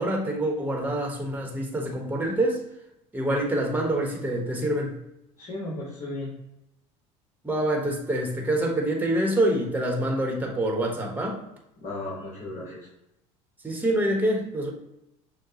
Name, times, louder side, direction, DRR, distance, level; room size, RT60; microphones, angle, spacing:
voice 1, 0.0-2.6 3.1-5.0 7.4-11.4 13.6-14.7, right 1 dB, 10° right, 0 dB, 1.2 m, -26 dB
voice 2, 5.4-6.3 11.8-12.9, left 2 dB, 50° left, -5 dB, 1.5 m, -35 dB
6.5 x 2.3 x 2.9 m, 0.87 s
hypercardioid pair, 85°, 17 cm